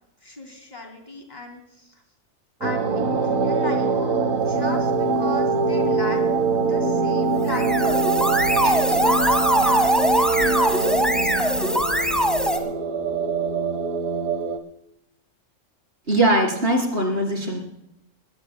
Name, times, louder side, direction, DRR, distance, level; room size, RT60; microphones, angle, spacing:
voice 1, 0.2-2.0 2.6-3.9 4.3-6.2 6.6-8.4 8.6-11.6, left 1 dB, 35° left, 2 dB, 3.1 m, -36 dB
sound 1, 2.6-14.6, right 4 dB, 90° right, 1.7 m, -23 dB
sound 2, 7.3-12.6, equal, ahead, 1.5 m, -22 dB
voice 2, 16.1-17.6, right 1 dB, 50° right, 0 dB, 4.3 m, -21 dB
20.5 x 20.0 x 2.2 m, 0.83 s
omnidirectional pair, 1.3 m